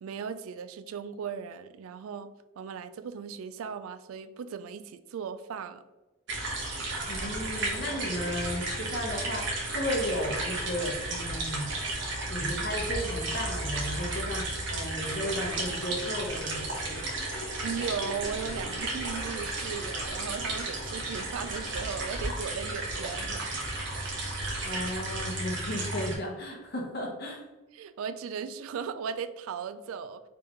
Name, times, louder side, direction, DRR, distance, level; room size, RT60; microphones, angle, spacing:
voice 1, 0.0-2.3 2.6-5.8 17.6-23.6 27.7-30.2, right 6 dB, 75° right, 12 dB, 0.3 m, -37 dB
sound 1, 6.3-26.1, right 2 dB, 55° right, 1.2 m, -33 dB
voice 2, 7.1-11.7 12.3-17.1 24.6-27.4, equal, 50° left, -1 dB, 1.1 m, -34 dB
4.6 x 3.4 x 3.1 m, 1.1 s
head